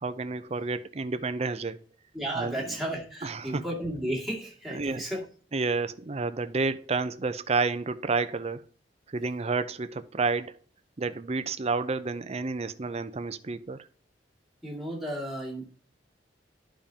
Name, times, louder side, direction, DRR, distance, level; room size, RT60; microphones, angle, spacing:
voice 1, 0.0-1.8 2.4-2.6 3.2-3.6 4.7-5.0 5.5-8.6 9.1-10.6 11.0-13.8, right 4 dB, 35° right, 0.6 m, -30 dB
voice 2, 2.1-5.3 14.6-15.7, right 1 dB, ahead, 2.2 m, -33 dB
11.0 x 5.1 x 2.8 m
head